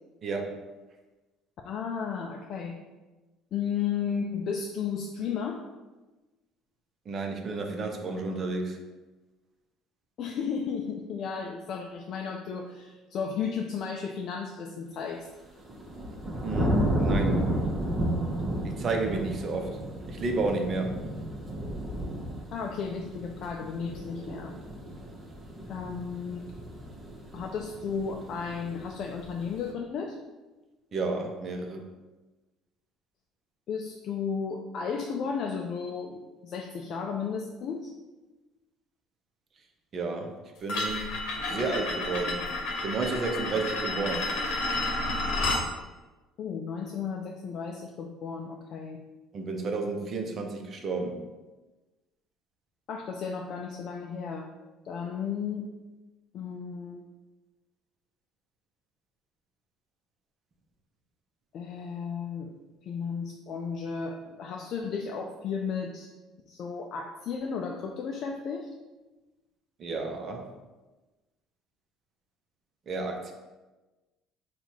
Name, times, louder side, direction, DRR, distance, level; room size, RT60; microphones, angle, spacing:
voice 1, 0.2-0.6 7.1-8.8 16.4-17.4 18.6-19.8 20.1-21.0 30.9-31.8 39.9-41.1 41.5-42.5 42.8-44.3 49.3-51.2 69.8-70.5 72.9-73.3, right 3 dB, 45° right, 4 dB, 0.7 m, -31 dB
voice 2, 1.6-2.8 3.5-5.6 10.2-15.3 22.5-24.5 25.7-26.5 27.3-30.2 33.7-37.9 46.4-49.0 52.9-54.5 54.8-55.7 56.3-57.0 61.5-62.6 62.8-66.1 66.5-68.7, left 6 dB, 55° left, 1 dB, 0.4 m, -34 dB
sound 1, 15.4-29.7, right 1 dB, 30° right, 1.0 m, -32 dB
sound 2, 40.7-45.6, left 2 dB, 75° left, 0.9 m, -30 dB
3.9 x 2.4 x 4.5 m, 1.2 s
supercardioid pair, 80°, 0 cm